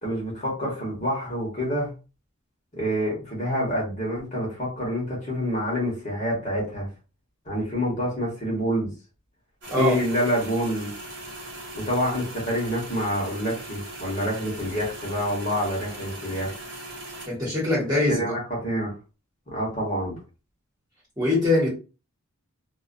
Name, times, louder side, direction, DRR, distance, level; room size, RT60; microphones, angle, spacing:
voice 1, 0.0-1.9 2.7-6.9 7.5-8.9 9.8-10.9 11.7-16.5 18.1-18.9 19.5-20.2, equal, 35° left, 1.1 m, -27 dB
sound 1, 9.6-17.3, right 1 dB, 55° right, 0.8 m, -39 dB
voice 2, 17.3-18.3 21.2-21.7, left 2 dB, 15° right, 1.1 m, -22 dB
2.3 x 2.2 x 2.5 m
head